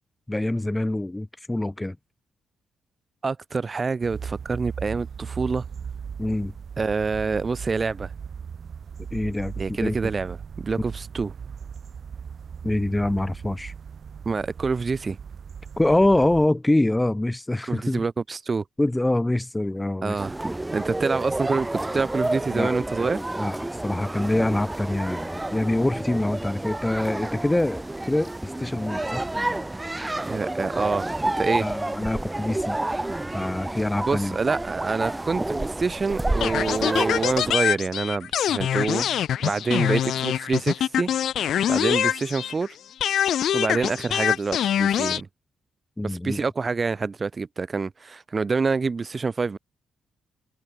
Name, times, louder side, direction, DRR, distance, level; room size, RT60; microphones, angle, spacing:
voice 1, 0.3-2.0 6.2-6.5 9.1-10.0 12.6-13.7 15.8-18.0 18.8-20.2 22.5-29.7 31.6-32.8 33.3-34.4 46.0-46.4, left 1 dB, 10° left, 1.2 m, -25 dB
voice 2, 3.2-5.6 6.8-8.1 9.6-11.3 14.3-15.2 17.7-18.6 20.0-20.4 20.7-23.2 30.3-31.7 34.1-39.1 39.4-41.1 41.7-42.7 43.5-45.3 46.0-49.6, right 4 dB, 35° right, 0.3 m, -26 dB
sound 1, 4.0-16.5, right 6 dB, 55° right, 0.9 m, -38 dB
sound 2, 20.2-37.6, right 2 dB, 15° right, 1.0 m, -30 dB
sound 3, 36.4-42.7 43.0-45.2, left 10 dB, 70° left, 0.7 m, -24 dB
cardioid pair, 75°, 0 cm